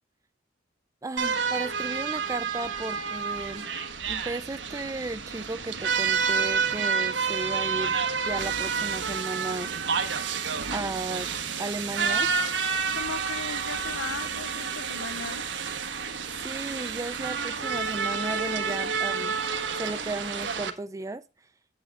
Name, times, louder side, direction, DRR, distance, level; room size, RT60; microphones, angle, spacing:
voice 1, 1.0-3.7 4.1-9.7 10.7-11.3 11.6-12.3 16.4-19.4 19.7-21.5, right 2 dB, 15° right, 0.4 m, -35 dB
sound 1, 1.2-20.7, right 5 dB, 70° right, 1.4 m, -29 dB
voice 2, 12.9-15.5, left 5 dB, 80° left, 0.8 m, -38 dB
8.9 x 8.7 x 3.6 m
head